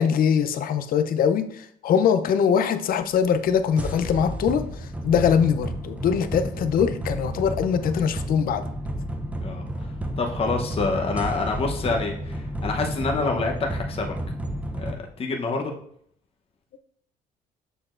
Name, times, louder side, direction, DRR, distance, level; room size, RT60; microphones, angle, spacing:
voice 1, 0.0-8.6, left 7 dB, 60° left, 10 dB, 0.6 m, -22 dB
sound 1, 3.1-14.9, right 1 dB, 10° right, 0.6 m, -32 dB
voice 2, 10.2-14.1 14.8-15.7, left 3 dB, 35° left, 2 dB, 0.9 m, -27 dB
6.9 x 6.1 x 2.5 m, 0.67 s
cardioid pair, 110°, 17 cm